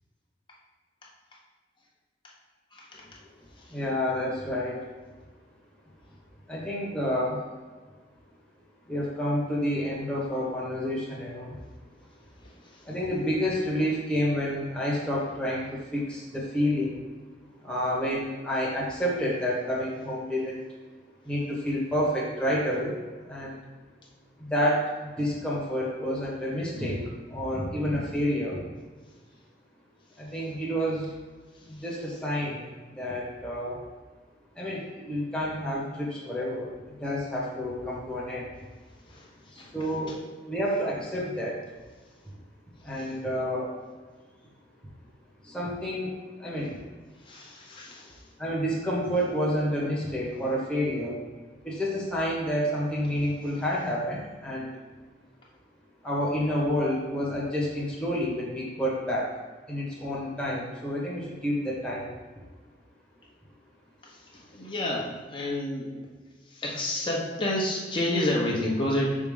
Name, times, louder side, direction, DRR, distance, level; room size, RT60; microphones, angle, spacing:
voice 1, 3.7-4.8 6.5-7.4 8.9-11.6 12.8-17.0 17.6-20.6 21.2-23.0 23.3-23.6 24.4-28.7 30.2-31.1 31.6-32.7 33.0-33.8 34.5-36.7 37.0-38.5 39.5-41.6 42.8-43.7 45.4-46.1 46.4-46.8 48.4-51.2 51.6-54.7 56.0-59.3 59.7-62.1, equal, 5° left, -5 dB, 1.4 m, -29 dB
voice 2, 47.2-48.2 64.0-65.9 66.5-69.2, left 1 dB, 30° left, -3 dB, 1.2 m, -29 dB
5.8 x 3.7 x 5.6 m, 1.4 s
head